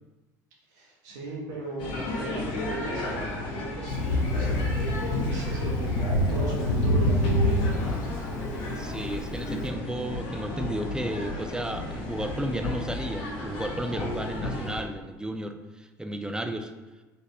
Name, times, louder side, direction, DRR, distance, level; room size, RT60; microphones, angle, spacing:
voice 1, 0.7-7.9, right 2 dB, 80° right, -4 dB, 1.0 m, -38 dB
sound 1, 1.8-14.8, left 2 dB, 60° left, 0.9 m, -33 dB
Thunder, 3.9-9.6, left 1 dB, 90° left, 0.5 m, -26 dB
voice 2, 8.8-16.7, right 1 dB, 10° right, 6 dB, 0.4 m, -33 dB
4.0 x 3.4 x 2.7 m, 1.1 s
hypercardioid pair, 65°, 9 cm